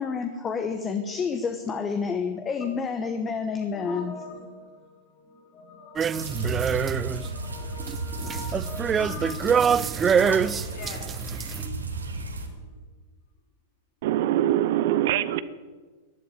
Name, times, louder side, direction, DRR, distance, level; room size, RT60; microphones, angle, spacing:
voice 1, 0.0-4.1, left 5 dB, 25° left, 7 dB, 1.2 m, -29 dB
voice 2, 3.7-12.8, left 5 dB, 40° left, 0 dB, 5.4 m, -43 dB
sound 1, 6.0-7.3 7.6-11.7, right 7 dB, 25° right, 0.4 m, -25 dB
sound 2, 6.1-12.5, right 3 dB, 90° right, 2.3 m, -34 dB
voice 3, 14.0-15.4, right 12 dB, 60° right, 15 dB, 0.7 m, -23 dB
12.0 x 11.0 x 9.9 m, 1.4 s
hypercardioid pair, 100°, 0 cm